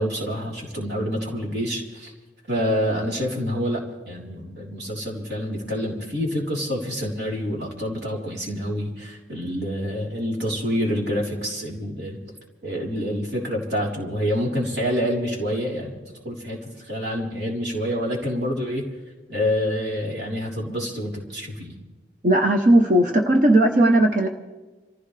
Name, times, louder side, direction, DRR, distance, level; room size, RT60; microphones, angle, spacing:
voice 1, 0.0-2.1 2.5-12.2 12.6-16.0 16.2-18.8 19.3-21.7, equal, 65° right, -2 dB, 4.0 m, -27 dB
voice 2, 22.2-24.3, right 1 dB, 45° right, 3 dB, 0.9 m, -17 dB
27.5 x 15.5 x 3.4 m, 1.2 s
head